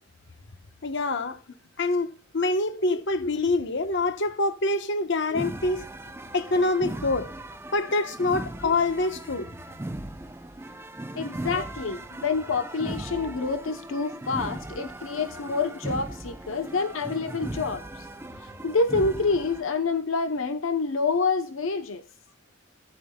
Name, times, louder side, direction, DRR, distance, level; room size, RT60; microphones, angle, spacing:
voice 1, 0.8-1.4 1.8-2.1 2.3-5.9 6.3-7.3 7.7-9.5, left 2 dB, 65° left, 1.1 m, -25 dB
voice 2, 2.8-3.3 5.3-5.4 8.6-8.7 11.2-18.1 18.6-22.0, left 4 dB, 85° left, 0.8 m, -27 dB
sound 1, 5.3-19.6, right 1 dB, 15° right, 0.6 m, -38 dB
15.0 x 11.0 x 2.3 m
head